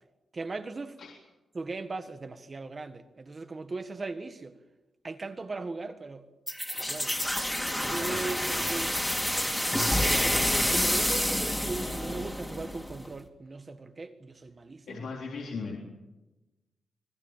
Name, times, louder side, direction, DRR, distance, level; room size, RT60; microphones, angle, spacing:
voice 1, 0.3-1.0 1.5-4.5 5.0-6.3 6.7-7.2 7.8-15.1, right 3 dB, 30° right, 1.6 m, -38 dB
sound 1, 6.5-13.1, left 1 dB, 5° left, 2.9 m, -28 dB
voice 2, 14.9-15.9, left 4 dB, 75° left, 3.8 m, -37 dB
26.0 x 20.0 x 7.5 m
wide cardioid pair, 135°, 0 cm